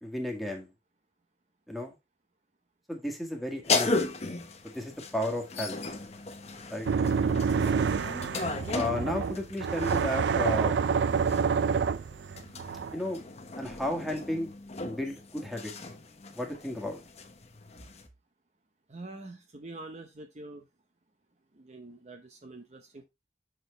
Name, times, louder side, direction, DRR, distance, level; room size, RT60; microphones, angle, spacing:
voice 1, 0.0-0.7 1.7-1.9 2.9-4.1 4.6-5.8 6.7-6.9 8.7-10.8 12.9-13.2 13.6-14.5 14.8-15.7 16.3-17.0, left 1 dB, ahead, 1.8 m, -33 dB
sound 1, 3.6-10.2 11.2-18.1, left 3 dB, 40° left, 1.0 m, -36 dB
sound 2, 6.9-13.0, right 6 dB, 80° right, 0.4 m, -27 dB
voice 2, 18.9-20.7 21.5-23.0, right 2 dB, 40° right, 0.8 m, -45 dB
6.4 x 6.2 x 3.2 m
head